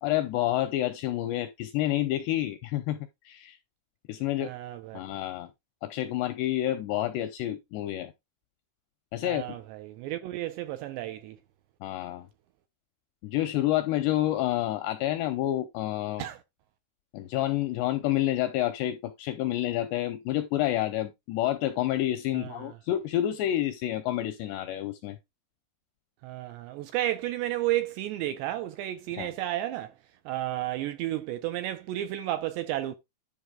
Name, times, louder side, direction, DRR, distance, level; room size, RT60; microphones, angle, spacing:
voice 1, 0.0-3.0 3.3-3.6 4.1-4.5 4.9-5.5 5.8-8.1 9.1-9.6 11.8-12.3 13.2-16.3 17.1-25.2 29.1-29.3, left 13 dB, 85° left, 2.4 m, -29 dB
voice 2, 4.4-5.0 9.2-11.4 16.2-16.4 22.3-22.7 26.2-29.9 30.3-33.0, right 14 dB, 80° right, 2.6 m, -32 dB
10.5 x 5.1 x 3.7 m
omnidirectional pair, 5.6 m